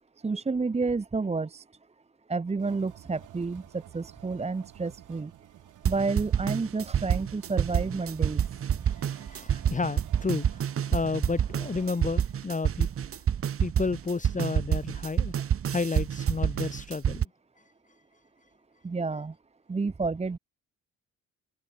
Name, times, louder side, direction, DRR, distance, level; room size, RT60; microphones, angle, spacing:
voice 1, 0.2-1.6 2.3-5.3 5.8-8.5 18.8-19.3 19.7-20.4, right 4 dB, 20° right, 1.2 m, -30 dB
sound 1, 2.6-12.0, right 13 dB, 80° right, 7.8 m, -52 dB
sound 2, 5.9-17.2, right 9 dB, 45° right, 1.2 m, -28 dB
voice 2, 8.8-10.6 10.9-12.9 13.6-15.3 15.7-17.3, left 4 dB, 25° left, 2.7 m, -31 dB
open air
cardioid pair, 90°, 30 cm